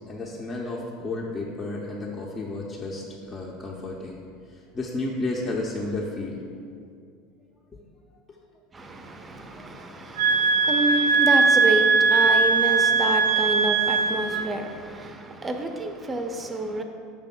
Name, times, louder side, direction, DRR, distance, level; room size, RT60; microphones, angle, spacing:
voice 1, 0.1-4.2 4.7-6.4 7.7-7.8, left 2 dB, 25° left, -4 dB, 0.6 m, -32 dB
voice 2, 8.7-16.8, right 2 dB, 20° right, 5 dB, 0.6 m, -29 dB
sound 1, 10.2-14.5, right 4 dB, 70° right, 0.5 m, -20 dB
5.8 x 3.4 x 5.6 m, 2.3 s
figure-of-eight pair, 75°, 0 cm